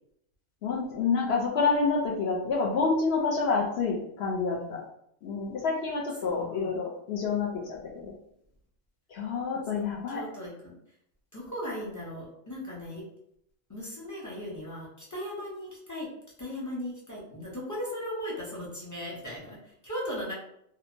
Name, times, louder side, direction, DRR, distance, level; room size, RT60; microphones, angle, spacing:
voice 1, 0.6-4.8 5.2-8.1 9.1-10.2, left 4 dB, 65° left, -1 dB, 0.7 m, -28 dB
voice 2, 4.5-4.8 6.3-6.7 9.7-10.8 11.3-13.0 13.7-16.1 16.4-20.3, equal, 25° left, -5 dB, 0.4 m, -38 dB
2.8 x 2.1 x 2.5 m, 0.76 s
omnidirectional pair, 1.3 m